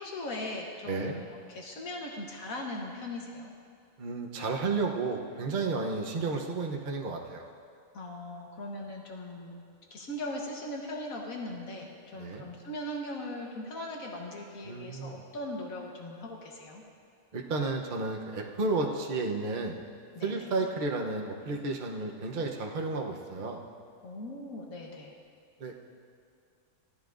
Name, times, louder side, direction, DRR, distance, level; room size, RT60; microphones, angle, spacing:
voice 1, 0.0-3.5 7.9-9.6 9.9-16.8 20.1-20.5 24.0-25.1, left 1 dB, 80° left, 0 dB, 1.6 m, -39 dB
voice 2, 4.0-7.5 12.1-12.4 14.6-15.2 17.3-19.8 20.2-23.6 25.6-25.8, right 3 dB, 40° right, 1 dB, 0.9 m, -32 dB
16.5 x 13.0 x 2.6 m, 2.3 s
omnidirectional pair, 1.4 m